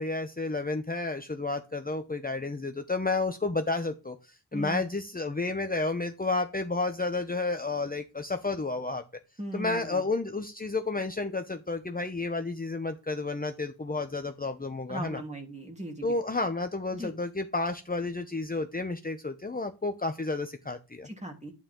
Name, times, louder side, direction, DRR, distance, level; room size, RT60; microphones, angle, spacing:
voice 1, 0.0-9.0 9.5-15.2 16.0-21.1, left 3 dB, 25° left, 6 dB, 0.9 m, -31 dB
voice 2, 4.5-4.8 9.4-10.0 14.9-16.2 16.9-17.1 21.0-21.5, right 1 dB, 20° right, 2 dB, 3.2 m, -38 dB
11.5 x 9.2 x 3.8 m, 0.29 s
wide cardioid pair, 100°, 37 cm